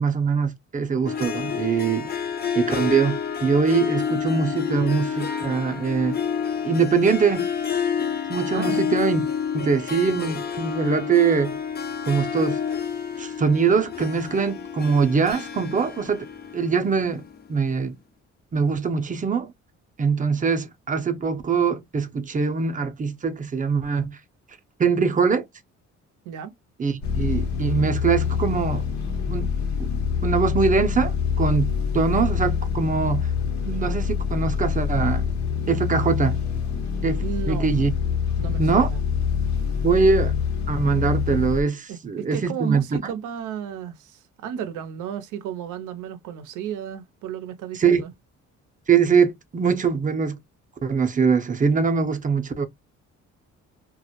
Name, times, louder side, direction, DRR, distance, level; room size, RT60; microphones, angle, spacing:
voice 1, 0.0-2.1 2.5-6.2 6.6-7.5 8.3-9.2 9.5-11.6 12.1-12.6 13.2-16.3 16.5-17.2 17.5-18.0 18.5-19.5 20.0-24.2 24.8-25.4 26.8-28.8 29.3-29.5 29.8-29.9 30.2-33.3 33.6-35.2 35.7-36.4 37.0-37.9 38.6-38.9 39.8-40.3 40.7-43.1 47.7-48.0 48.9-50.4 50.8-52.7, right 5 dB, 25° right, 0.5 m, -22 dB
Harp, 1.0-17.5, left 7 dB, 35° left, 0.5 m, -29 dB
voice 2, 8.5-8.8 26.3-26.5 37.2-37.8 38.4-39.0 41.9-48.1, right 9 dB, 85° right, 0.5 m, -33 dB
sound 1, 27.0-41.6, left 7 dB, 65° left, 0.8 m, -25 dB
2.2 x 2.0 x 2.8 m
cardioid pair, 90°, 30 cm